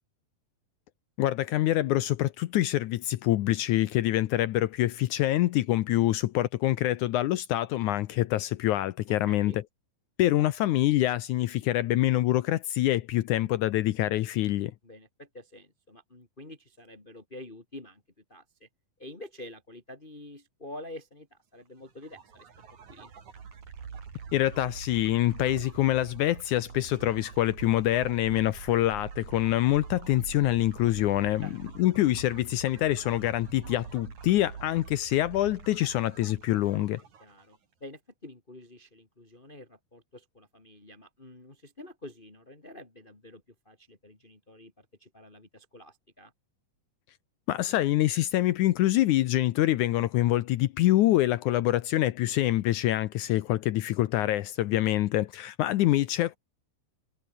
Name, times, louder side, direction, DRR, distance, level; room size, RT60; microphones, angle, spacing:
voice 1, 1.2-9.6 10.2-14.7 24.3-31.5 31.8-37.0 47.5-56.4, left 15 dB, 75° left, 2.0 m, -25 dB
voice 2, 9.3-9.6 14.8-18.0 18.3-18.7 19.0-22.5 22.9-23.1 31.4-31.6 37.2-46.3, left 1 dB, 15° left, 2.9 m, -47 dB
sound 1, 21.9-37.6, right 6 dB, 55° right, 4.7 m, -44 dB
omnidirectional pair, 4.0 m